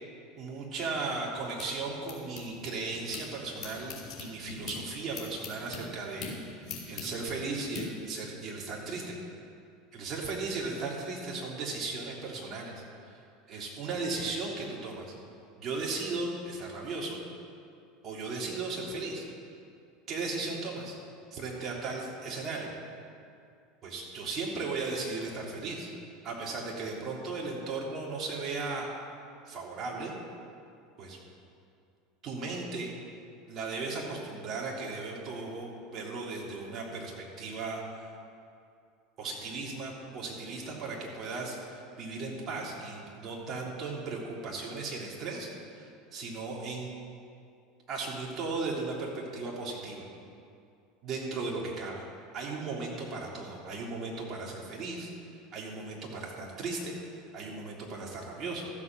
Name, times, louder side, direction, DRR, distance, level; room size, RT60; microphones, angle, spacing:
voice 1, 0.4-9.2 9.9-12.7 13.1-13.2 13.5-15.1 15.6-17.2 18.0-19.3 20.1-21.0 21.3-22.7 23.8-25.9 26.2-28.9 29.5-30.1 31.0-31.2 32.2-32.9 33.5-38.0 39.2-46.9 47.9-50.1 51.0-52.0 52.3-57.0 57.3-58.7, right 3 dB, 40° right, -3 dB, 3.2 m, -36 dB
sound 1, 0.9-3.2 3.6-7.8, left 6 dB, 40° left, 3.2 m, -43 dB
13.5 x 7.6 x 6.2 m, 2.4 s
hypercardioid pair, 80°, 0 cm